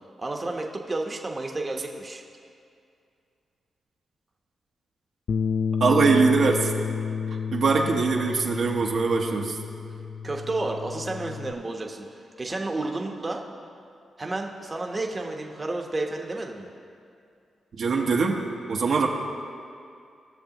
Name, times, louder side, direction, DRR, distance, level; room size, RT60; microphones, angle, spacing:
voice 1, 0.2-2.2 10.2-12.1 12.4-13.4 14.2-16.7, right 2 dB, 30° right, 1 dB, 1.0 m, -31 dB
Bass guitar, 5.3-11.5, left 6 dB, 65° left, 0.3 m, -31 dB
voice 2, 5.8-6.7 7.5-9.6 17.7-18.4 18.7-19.1, right 4 dB, 65° right, 0 dB, 1.0 m, -22 dB
18.0 x 6.7 x 3.0 m, 2.4 s
cardioid pair, 75°, 0 cm